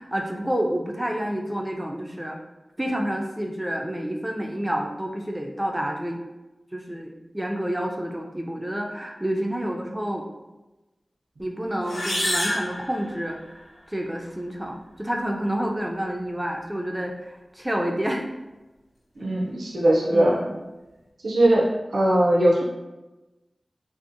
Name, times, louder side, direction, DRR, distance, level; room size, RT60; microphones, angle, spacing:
voice 1, 0.0-2.4 2.8-6.2 6.7-10.3 11.4-13.4 13.9-18.2 19.2-19.4 20.1-20.6, equal, 15° right, 1 dB, 0.3 m, -29 dB
sound 1, 11.8-13.7, left 1 dB, 75° left, 0.8 m, -28 dB
voice 2, 19.2-20.4 21.2-21.7 21.9-22.6, right 1 dB, 90° right, -3 dB, 0.3 m, -20 dB
2.6 x 2.0 x 2.5 m, 1.1 s
cardioid pair, 45°, 0 cm